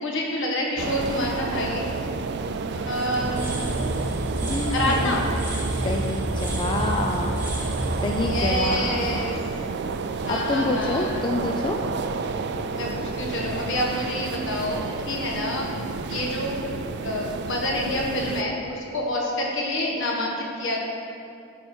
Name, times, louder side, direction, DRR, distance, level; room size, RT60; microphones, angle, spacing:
voice 1, 0.0-1.9 2.7-3.8 4.5-5.2 8.2-9.3 10.2-11.2 12.7-15.7 16.1-16.6 17.0-20.8, left 1 dB, 65° left, -1 dB, 1.5 m, -28 dB
sound 1, 0.8-18.4, right 4 dB, 55° right, 0.4 m, -30 dB
sound 2, 3.1-10.0, right 1 dB, 10° right, 1.4 m, -30 dB
voice 2, 4.4-5.2 5.8-7.4 8.0-9.4 10.3-11.8, left 2 dB, 25° left, 2 dB, 0.4 m, -27 dB
12.0 x 4.9 x 4.4 m, 2.6 s
head